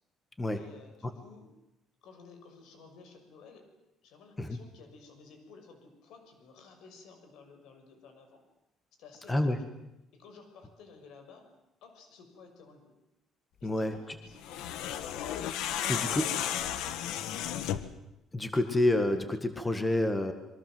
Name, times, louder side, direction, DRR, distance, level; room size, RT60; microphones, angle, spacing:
voice 1, 0.5-1.5 2.0-3.7 4.0-8.4 9.0-9.6 10.1-11.5 11.8-13.0 13.6-16.6, left 4 dB, 70° left, 6 dB, 6.3 m, -54 dB
voice 2, 9.3-9.6 13.6-13.9 15.9-16.2 18.3-20.3, left 1 dB, 10° left, 8 dB, 1.8 m, -28 dB
sound 1, 14.4-18.0, left 10 dB, 90° left, 1.6 m, -33 dB
27.0 x 23.5 x 7.8 m, 0.89 s
cardioid pair, 175°, 0 cm